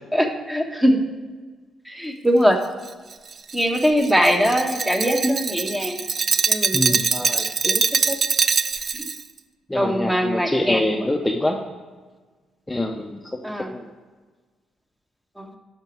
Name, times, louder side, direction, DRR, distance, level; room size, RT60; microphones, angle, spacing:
voice 1, 0.1-1.0 1.8-2.6 3.5-6.0 6.5-8.2 9.0-9.1 9.7-11.0 13.4-13.7 15.4-15.5, equal, 10° right, 3 dB, 1.2 m, -22 dB
Glass, 2.8-9.2, right 5 dB, 45° right, 0.4 m, -23 dB
voice 2, 6.7-7.0 9.7-11.6 12.7-13.8, left 1 dB, 10° left, 1 dB, 0.7 m, -25 dB
11.0 x 5.2 x 4.6 m, 1.4 s
cardioid pair, 90°, 0 cm